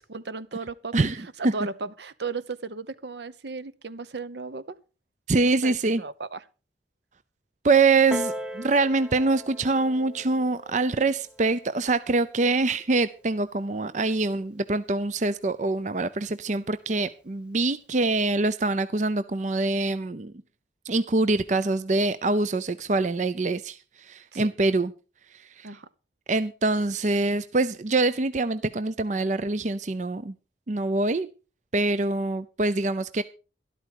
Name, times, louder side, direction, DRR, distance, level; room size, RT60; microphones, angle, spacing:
voice 1, 0.0-4.8 5.6-6.4 24.3-24.5 25.6-25.9, right 4 dB, 70° right, 0.8 m, -36 dB
voice 2, 0.9-1.5 5.3-6.0 7.6-20.3 20.9-24.9 25.6-25.7 26.3-30.3 30.7-31.3 31.7-33.2, right 3 dB, 40° right, 0.6 m, -24 dB
Piano, 8.1-13.3 14.1-14.2, equal, 5° right, 0.7 m, -39 dB
13.0 x 12.5 x 4.7 m
head